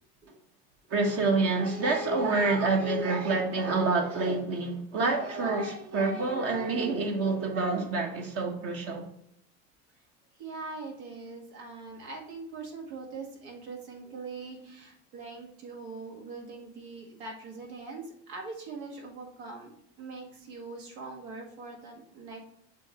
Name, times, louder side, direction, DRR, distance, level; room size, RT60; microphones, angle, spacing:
voice 1, 0.9-9.1, right 3 dB, 55° right, 1.4 m, -27 dB
voice 2, 10.4-22.4, right 3 dB, 85° right, 1.8 m, -42 dB
6.9 x 2.9 x 5.7 m
supercardioid pair, 100°, 29 cm